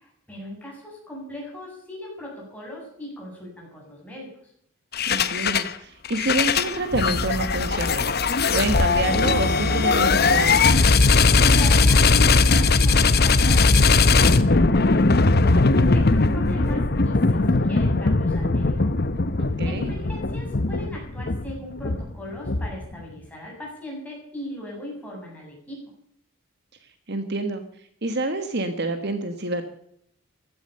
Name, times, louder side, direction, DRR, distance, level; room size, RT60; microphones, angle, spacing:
voice 1, 0.0-4.3 11.4-18.9 19.6-25.8, equal, 5° left, -3 dB, 7.4 m, -38 dB
sound 1, 4.9-5.7 6.0-23.0, left 3 dB, 45° left, 0.9 m, -19 dB
voice 2, 5.1-8.0 8.5-10.8 19.4-19.9 27.1-27.6 28.0-29.6, right 2 dB, 50° right, 8 dB, 1.5 m, -27 dB
15.5 x 12.5 x 6.8 m, 0.68 s
head